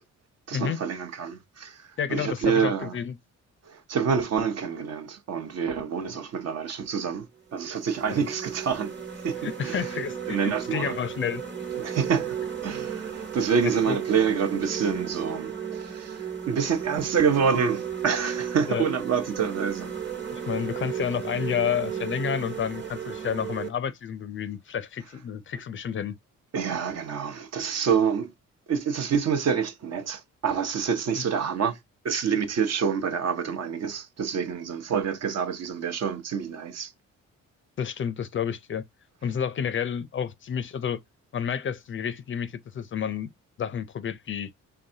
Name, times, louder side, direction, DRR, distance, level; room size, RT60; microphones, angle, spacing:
voice 1, 0.5-2.9 3.7-7.3 7.5-8.9 9.2-9.9 10.3-11.0 11.8-12.4 12.6-19.9 26.5-28.3 28.7-31.8 32.0-36.9, right 6 dB, 55° right, 0.8 m, -27 dB
voice 2, 2.0-3.1 8.1-8.3 9.4-11.4 13.6-14.0 18.7-18.9 20.3-26.1 31.2-31.3 37.8-38.8 39.2-41.0 41.3-43.3 43.6-44.5, left 8 dB, 40° left, 0.5 m, -30 dB
sound 1, 6.8-6.9 7.5-23.7, right 8 dB, 35° right, 1.2 m, -35 dB
3.8 x 3.4 x 2.7 m
cardioid pair, 90°, 30 cm